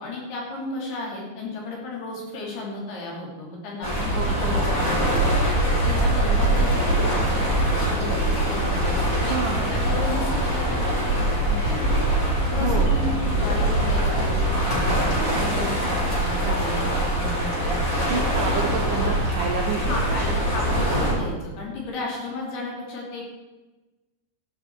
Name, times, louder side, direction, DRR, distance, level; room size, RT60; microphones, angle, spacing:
voice 1, 0.0-5.3 5.8-11.9 12.4-18.0 18.5-18.6 19.8-23.2, left 2 dB, 65° left, -2 dB, 4.9 m, -34 dB
sound 1, 3.8-21.1, right 1 dB, 20° left, 4.6 m, -23 dB
voice 2, 4.2-4.5 9.3-9.7 12.6-13.0 18.1-20.5 20.9-21.2, right 5 dB, 70° right, 1 dB, 2.0 m, -29 dB
15.0 x 11.0 x 4.7 m, 1.1 s
omnidirectional pair, 5.2 m